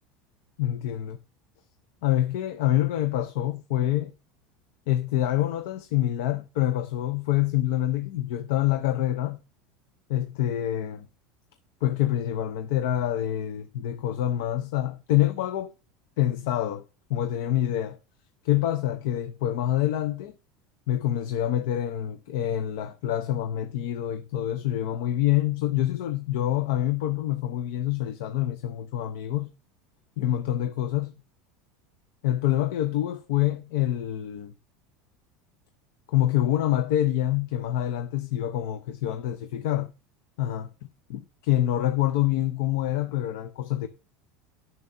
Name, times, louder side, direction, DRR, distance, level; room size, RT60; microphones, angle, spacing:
voice 1, 0.6-1.2 2.0-4.1 4.9-9.4 10.1-11.1 11.8-15.7 16.2-16.8 17.1-18.0 18.4-20.3 20.9-29.5 30.2-31.1 32.2-34.5 36.1-39.9 40.4-40.7 41.1-43.9, left 12 dB, 70° left, 0.7 m, -26 dB
11.0 x 6.8 x 2.7 m
supercardioid pair, 160°, 0 cm